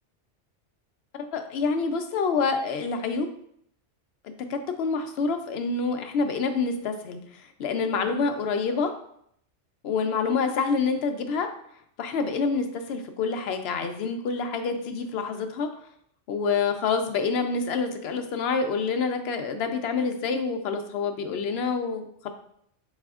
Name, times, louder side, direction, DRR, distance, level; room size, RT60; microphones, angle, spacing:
voice 1, 1.3-3.3 4.5-8.9 9.8-11.5 12.0-15.7 16.3-22.3, left 4 dB, 65° left, 7 dB, 0.7 m, -27 dB
4.9 x 4.0 x 2.4 m, 0.70 s
omnidirectional pair, 1.2 m